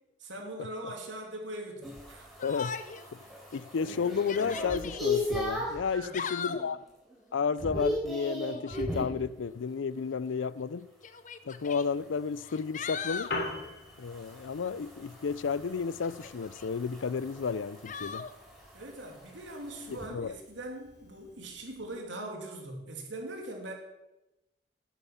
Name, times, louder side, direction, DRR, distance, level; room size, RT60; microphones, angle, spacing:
voice 1, 0.2-2.4 5.9-6.2 18.7-23.7, right 1 dB, 75° right, 2.8 m, -41 dB
sound 1, 1.8-5.9 6.4-6.8 7.1-9.2 11.7-20.1, left 1 dB, ahead, 4.4 m, -38 dB
voice 2, 2.4-2.8 3.5-6.8 7.3-10.9 11.4-13.3 14.0-18.3 20.1-20.4, left 5 dB, 85° left, 0.4 m, -32 dB
Yell, 2.4-3.1 3.5-3.6 4.1-5.0 5.9-6.7 8.5-8.9 10.1-10.2 11.0-11.9 12.4-13.4 16.0-16.7 17.9-18.3, left 6 dB, 40° left, 0.6 m, -39 dB
Piano, 13.0-22.0, left 2 dB, 60° left, 2.8 m, -45 dB
10.5 x 9.0 x 7.2 m
head